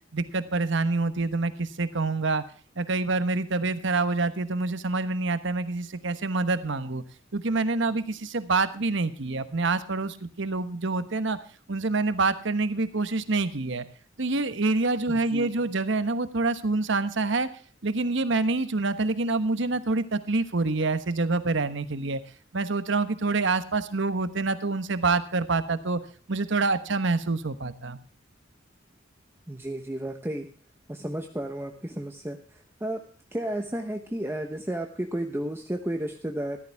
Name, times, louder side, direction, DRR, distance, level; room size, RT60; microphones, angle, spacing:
voice 1, 0.1-2.4 2.8-7.0 7.3-11.4 11.7-13.8 14.2-17.5 17.8-22.2 22.5-26.0 26.3-28.0, right 3 dB, 65° right, 12 dB, 1.1 m, -26 dB
voice 2, 15.1-15.5 29.5-30.5 30.9-33.0 33.3-36.6, right 1 dB, 10° right, 4 dB, 1.0 m, -32 dB
14.0 x 14.0 x 3.5 m, 0.42 s
head